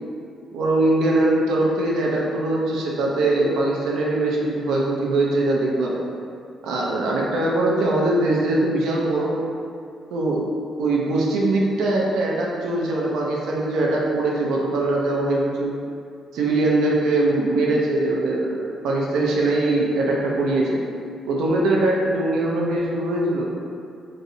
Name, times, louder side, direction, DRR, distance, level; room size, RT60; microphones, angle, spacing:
voice 1, 0.5-6.0 6.6-9.4 10.1-10.4 10.8-15.7 16.3-20.8 21.3-23.5, right 2 dB, 85° right, -3 dB, 0.5 m, -22 dB
3.0 x 2.7 x 2.6 m, 2.4 s
cardioid pair, 90°, 0 cm